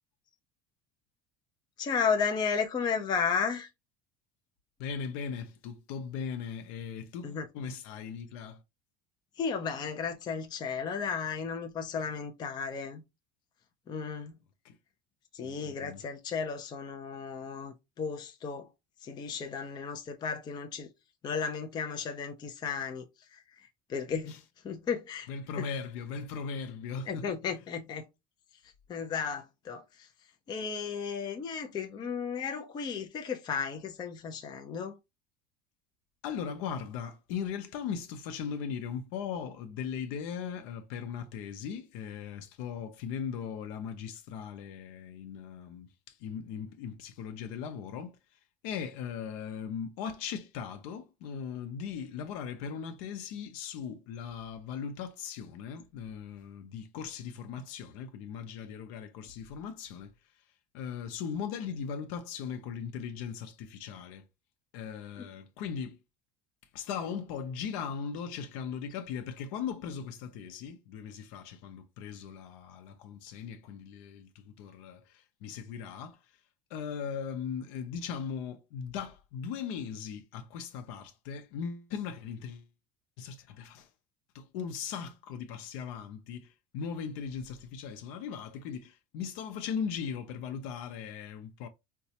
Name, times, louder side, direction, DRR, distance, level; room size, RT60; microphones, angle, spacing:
voice 1, 1.8-3.7 7.2-7.5 9.4-13.0 13.9-14.4 15.3-18.7 19.0-20.9 21.2-24.4 24.6-25.3 25.6-25.7 27.1-28.1 28.9-30.1 30.5-35.0 65.2-65.3, left 6 dB, 25° left, 0.5 m, -34 dB
voice 2, 4.8-8.6 14.6-14.8 15.4-16.0 24.3-24.4 25.3-27.3 36.2-48.2 48.6-60.1 60.7-64.3 64.7-66.0 66.7-76.2 76.7-82.7 83.2-83.9 84.3-91.7, left 7 dB, 75° left, 0.6 m, -38 dB
3.9 x 2.3 x 2.7 m
cardioid pair, 155°, 19 cm